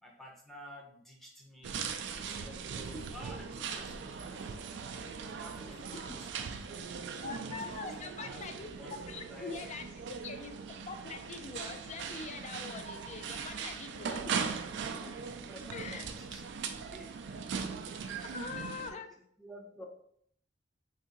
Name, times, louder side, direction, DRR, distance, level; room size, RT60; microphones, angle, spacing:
voice 1, 0.0-4.7 5.2-7.1 7.6-9.7 10.0-10.2 14.2-14.4 15.0-17.4 18.0-19.8, equal, ahead, -1 dB, 0.6 m, -53 dB
sound 1, 1.6-18.9, right 6 dB, 70° right, 0.3 m, -40 dB
voice 2, 5.7-6.1 7.2-14.4 15.7-16.0 18.2-19.1, left 4 dB, 40° left, 7 dB, 0.4 m, -44 dB
2.7 x 2.6 x 3.8 m, 0.66 s
head